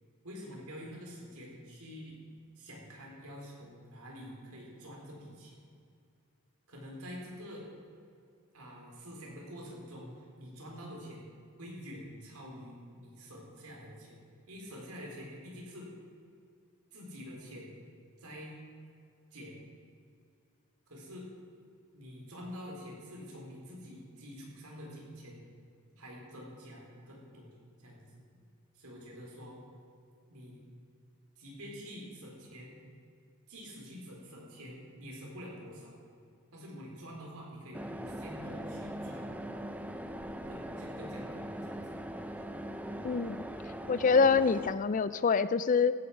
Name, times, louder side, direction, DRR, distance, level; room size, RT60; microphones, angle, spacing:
voice 1, 0.2-2.2 2.6-5.5 6.7-7.7 8.5-11.3 11.6-14.2 14.5-15.9 16.9-17.8 18.2-18.5 19.3-19.6 20.9-21.3 21.9-25.5 25.9-27.5 27.8-28.2 28.7-29.6 30.3-30.6 31.4-32.8 33.5-36.0 36.5-39.4 40.5-42.0, equal, 80° right, -2 dB, 4.1 m, -47 dB
sound 1, 37.7-44.7, right 1 dB, 5° right, 0.6 m, -41 dB
voice 2, 43.0-43.4 43.9-45.9, left 5 dB, 35° left, 15 dB, 0.3 m, -25 dB
16.0 x 9.3 x 5.9 m, 2.4 s
head